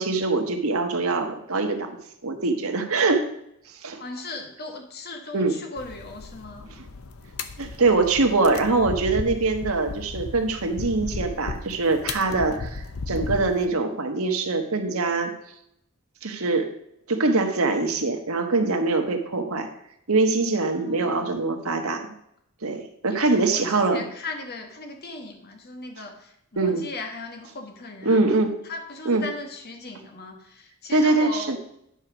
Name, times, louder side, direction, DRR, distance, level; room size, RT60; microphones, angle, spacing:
voice 1, 0.0-1.9 2.2-3.2 3.8-4.0 5.3-5.6 7.6-15.3 16.2-16.7 17.1-19.7 20.1-22.1 22.6-24.0 26.6-26.8 28.0-28.5 29.0-29.3 30.9-31.6, right 3 dB, 80° right, 4 dB, 1.3 m, -23 dB
voice 2, 4.0-6.7 20.7-21.3 23.1-28.4 28.6-31.6, left 2 dB, 50° left, 4 dB, 1.6 m, -38 dB
sound 1, 5.8-13.7, left 3 dB, 75° left, 0.8 m, -35 dB
10.5 x 4.6 x 6.1 m, 0.75 s
head